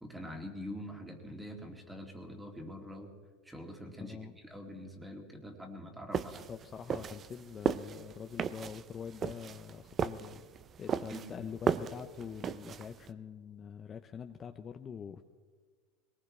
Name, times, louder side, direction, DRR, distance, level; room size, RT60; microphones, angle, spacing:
voice 1, 0.0-3.1 3.4-4.2 4.4-6.4 11.1-11.4, equal, 5° right, 2 dB, 2.4 m, -44 dB
voice 2, 4.0-4.4 6.5-10.4 10.8-15.2, left 7 dB, 30° left, 6 dB, 0.6 m, -45 dB
sound 1, 6.1-13.1, right 7 dB, 30° right, 0.5 m, -35 dB
21.5 x 19.0 x 3.3 m, 1.5 s
supercardioid pair, 115°, 0 cm